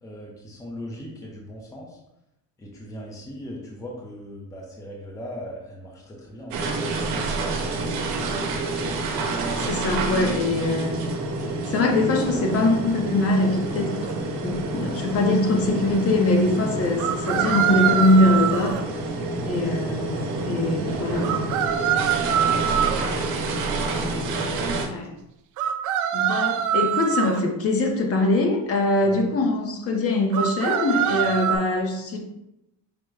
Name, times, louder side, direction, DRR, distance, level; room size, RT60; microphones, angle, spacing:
voice 1, 0.0-2.0 2.6-7.9 19.5-20.1 20.3-20.8 21.9-22.1 22.3-23.3 29.0-29.3 31.1-31.4, equal, 10° left, -3 dB, 0.5 m, -40 dB
sound 1, 6.5-24.9, right 2 dB, 75° right, 0.9 m, -28 dB
voice 2, 9.6-11.0 11.7-14.0 14.4-18.8 19.5-21.5 24.8-25.2 26.1-32.2, left 2 dB, 40° left, 1 dB, 0.8 m, -22 dB
sound 2, 14.1-14.2 17.0-18.8 21.2-23.0 25.6-27.4 30.3-31.6, right 9 dB, 55° right, 0.5 m, -24 dB
5.1 x 2.1 x 4.6 m, 0.87 s
cardioid pair, 165°, 36 cm